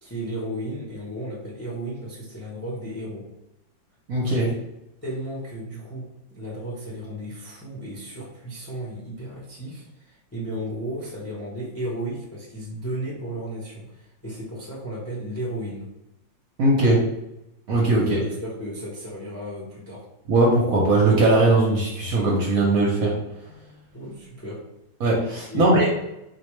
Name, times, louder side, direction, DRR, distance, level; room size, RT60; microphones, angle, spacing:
voice 1, 0.0-3.2 4.2-4.4 5.0-15.9 18.0-20.1 23.9-24.6 25.5-25.7, right 1 dB, 15° left, -5 dB, 0.5 m, -34 dB
voice 2, 4.1-4.5 16.6-17.0 17.7-18.2 20.3-23.1 23.5-23.7 25.0-25.9, right 2 dB, 60° right, -3 dB, 0.9 m, -19 dB
4.2 x 2.6 x 3.1 m, 0.87 s
omnidirectional pair, 2.1 m